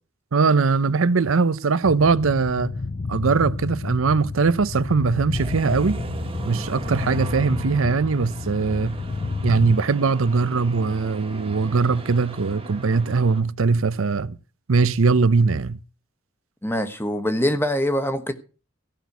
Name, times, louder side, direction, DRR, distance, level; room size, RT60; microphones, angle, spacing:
voice 1, 0.3-2.7 3.1-6.0 6.5-9.0 9.4-14.4 14.7-15.8, right 4 dB, 85° right, 0.7 m, -21 dB
sound 1, 1.8-9.8, left 3 dB, 45° left, 0.7 m, -31 dB
sound 2, 5.3-13.4, right 1 dB, 30° right, 1.4 m, -36 dB
voice 2, 16.6-18.3, equal, 10° left, 1.3 m, -23 dB
15.5 x 6.1 x 8.1 m
head